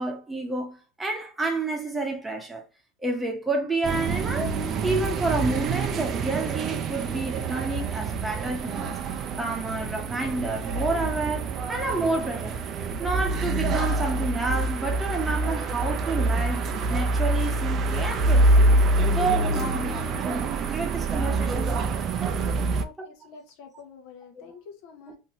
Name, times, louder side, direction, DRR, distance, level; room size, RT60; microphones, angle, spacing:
voice 1, 0.0-2.6 3.0-9.0 9.4-12.6 13.0-18.8 19.1-21.8 22.2-22.7 24.3-24.5, right 3 dB, 10° right, 0.8 m, -30 dB
sound 1, 3.8-22.8, right 2 dB, 40° right, 0.4 m, -26 dB
voice 2, 22.8-25.2, left 5 dB, 65° left, 0.7 m, -47 dB
2.7 x 2.7 x 2.7 m
supercardioid pair, 115°, 0 cm